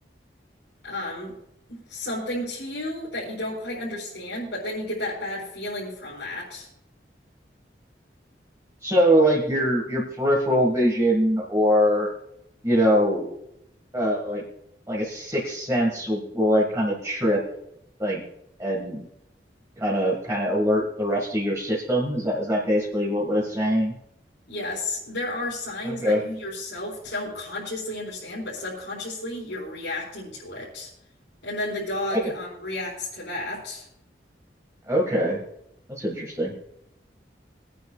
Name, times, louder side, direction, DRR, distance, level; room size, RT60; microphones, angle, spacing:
voice 1, 0.8-1.3 1.7-6.7 24.5-30.9 31.4-33.9, left 1 dB, 85° left, -7 dB, 4.5 m, -32 dB
voice 2, 8.8-12.1 12.6-13.3 13.9-14.4 14.9-17.4 18.0-18.2 18.6-19.1 19.8-23.9 25.9-26.2 32.1-32.3 34.9-35.4 35.9-36.5, equal, 20° right, -4 dB, 1.8 m, -23 dB
24.5 x 9.4 x 2.3 m, 0.80 s
head